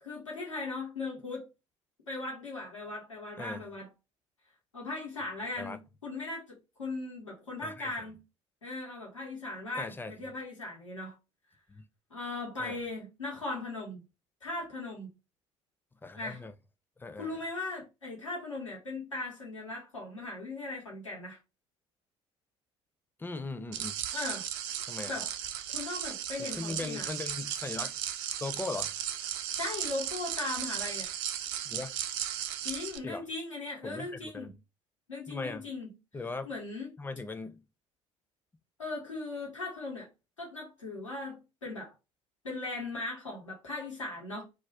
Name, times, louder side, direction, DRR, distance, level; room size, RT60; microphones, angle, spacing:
voice 1, 0.0-1.5 2.1-3.9 4.7-8.2 8.6-11.2 12.1-14.0 14.4-15.1 16.1-16.4 17.2-21.4 24.1-24.5 25.1-25.3 25.7-27.1 29.5-31.1 32.6-34.6 35.1-35.9 36.5-36.9 38.8-40.1 40.4-41.9 42.4-44.4, left 2 dB, 90° left, 1.0 m, -38 dB
voice 2, 7.6-8.1 9.7-10.1 11.7-11.8 12.6-12.8 16.0-16.5 17.0-17.4 23.2-24.0 24.9-25.1 26.4-28.0 28.4-28.9 31.7-31.9 33.0-33.3 33.8-34.5 35.3-35.7 36.1-36.5 37.0-37.6, left 3 dB, 15° left, 0.5 m, -39 dB
sound 1, 23.7-33.0, right 10 dB, 65° right, 0.4 m, -36 dB
2.4 x 2.3 x 3.3 m
figure-of-eight pair, 55°, 16 cm